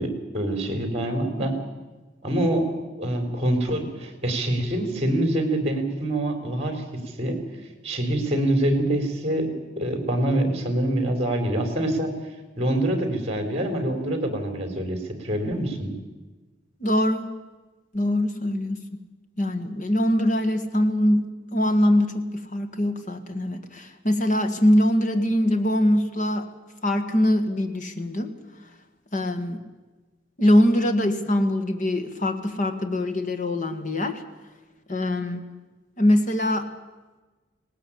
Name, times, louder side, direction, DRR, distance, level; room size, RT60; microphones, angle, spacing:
voice 1, 0.0-1.6 2.2-2.7 3.0-6.8 7.2-7.4 7.8-12.1 12.6-15.9, right 1 dB, 35° right, 7 dB, 3.6 m, -25 dB
voice 2, 16.8-17.3 17.9-19.0 19.4-26.5 26.8-28.3 29.1-29.6 30.4-34.2 34.9-35.4 36.0-36.7, left 1 dB, 40° left, 7 dB, 1.8 m, -23 dB
18.5 x 18.5 x 8.7 m, 1.2 s
head